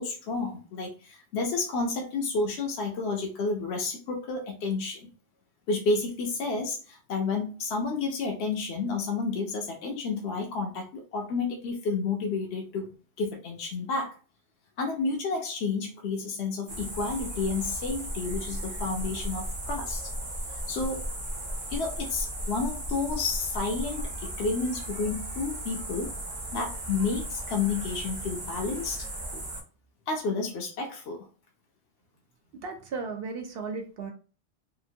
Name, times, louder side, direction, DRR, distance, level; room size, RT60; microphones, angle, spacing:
voice 1, 0.0-5.1 5.7-12.9 13.2-14.2 14.8-20.1 20.5-21.1 21.7-26.1 26.5-29.1 30.1-31.3, left 4 dB, 70° left, 1 dB, 0.8 m, -31 dB
sound 1, 16.7-29.6, right 1 dB, 30° right, 0.6 m, -36 dB
voice 2, 32.6-34.1, right 4 dB, 65° right, 4 dB, 0.7 m, -35 dB
2.9 x 2.5 x 2.6 m, 0.36 s
omnidirectional pair, 1.2 m